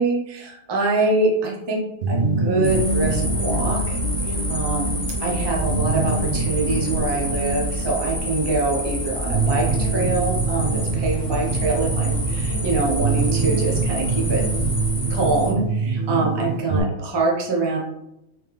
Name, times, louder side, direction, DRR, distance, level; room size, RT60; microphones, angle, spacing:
voice 1, 0.0-14.5 15.1-17.8, right 3 dB, 35° right, -1 dB, 0.4 m, -24 dB
sound 1, 2.0-16.8, right 3 dB, 60° right, 0.8 m, -25 dB
sound 2, 2.6-15.5, left 1 dB, 25° left, 0.4 m, -28 dB
3.9 x 3.0 x 3.3 m, 0.83 s
omnidirectional pair, 1.6 m